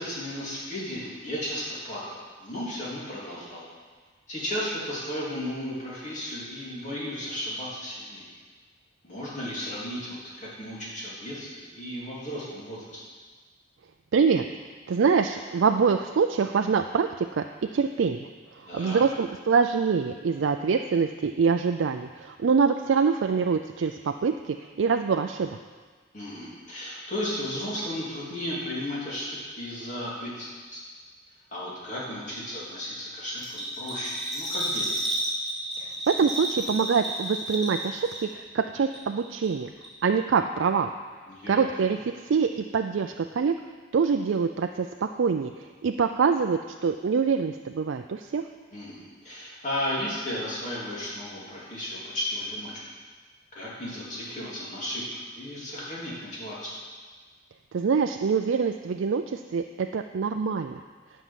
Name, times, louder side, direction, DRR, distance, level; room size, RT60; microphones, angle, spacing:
voice 1, 0.0-3.6 4.3-8.3 9.0-13.0 18.6-19.0 26.1-30.8 31.5-34.9 41.3-41.7 48.7-52.7 53.5-55.0 55.3-56.7, left 1 dB, 40° left, -7 dB, 3.1 m, -34 dB
voice 2, 14.1-14.4 14.9-17.4 17.7-18.3 18.5-25.6 35.8-39.7 40.0-40.9 41.5-43.6 43.9-48.4 57.7-60.8, right 5 dB, 70° right, 6 dB, 0.4 m, -25 dB
Bell, 33.4-38.5 38.7-39.5 39.8-39.9, right 1 dB, ahead, 2.7 m, -31 dB
11.0 x 5.6 x 7.4 m, 1.5 s
head